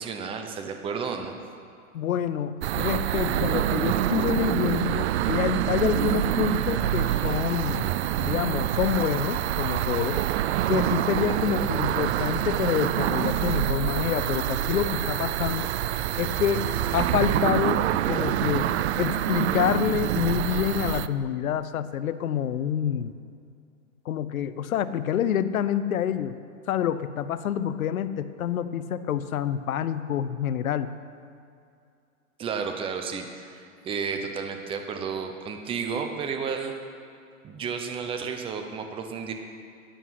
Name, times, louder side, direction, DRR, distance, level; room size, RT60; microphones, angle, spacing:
voice 1, 0.0-1.4 32.4-36.7 37.4-39.3, right 6 dB, 15° right, 5 dB, 0.8 m, -32 dB
voice 2, 1.9-7.9 8.2-10.2 10.7-15.7 16.2-16.6 16.9-17.8 18.1-18.7 19.0-23.1 24.1-26.4 26.7-30.9, left 9 dB, 80° left, 14 dB, 0.8 m, -27 dB
sound 1, 2.6-21.1, right 12 dB, 50° right, 0.5 m, -26 dB
12.5 x 10.0 x 5.9 m, 2.4 s
hypercardioid pair, 140°, 42 cm